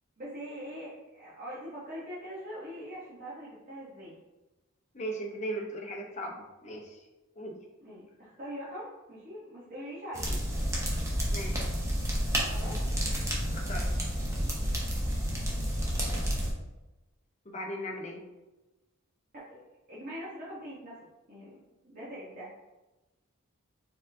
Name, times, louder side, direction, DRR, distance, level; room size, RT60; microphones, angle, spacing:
voice 1, 0.2-4.2 7.8-10.4 12.4-12.8 19.5-19.6 19.9-20.9 21.3-22.5, equal, 40° right, -9 dB, 1.0 m, -42 dB
voice 2, 4.9-7.0 7.4-7.6 11.3-11.7 13.5-13.8 17.5-18.2, right 1 dB, 30° left, 0 dB, 0.7 m, -38 dB
sound 1, 10.1-16.5, equal, 15° right, 0.7 m, -30 dB
4.4 x 3.7 x 2.7 m, 1.1 s
head